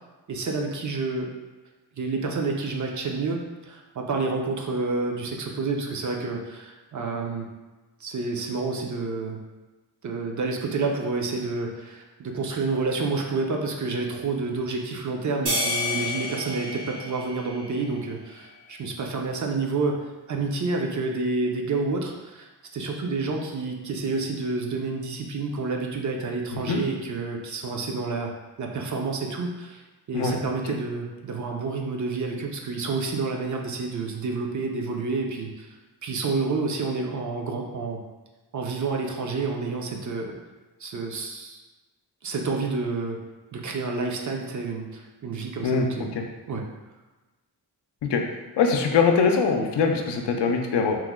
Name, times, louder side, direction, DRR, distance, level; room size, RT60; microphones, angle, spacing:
voice 1, 0.3-1.3 2.0-7.5 8.0-9.4 10.0-20.0 20.3-28.3 28.6-29.8 30.1-35.7 36.0-38.0 38.5-40.3 40.8-41.6 42.2-43.2 43.5-46.1 46.5-46.7, right 3 dB, 45° right, 1 dB, 0.5 m, -29 dB
sound 1, 15.5-18.1, left 1 dB, 70° right, 1.0 m, -30 dB
voice 2, 45.6-46.1 48.1-48.2 48.6-51.0, left 5 dB, 75° left, 3 dB, 0.5 m, -22 dB
3.0 x 2.0 x 3.6 m, 1.2 s
wide cardioid pair, 90°, 41 cm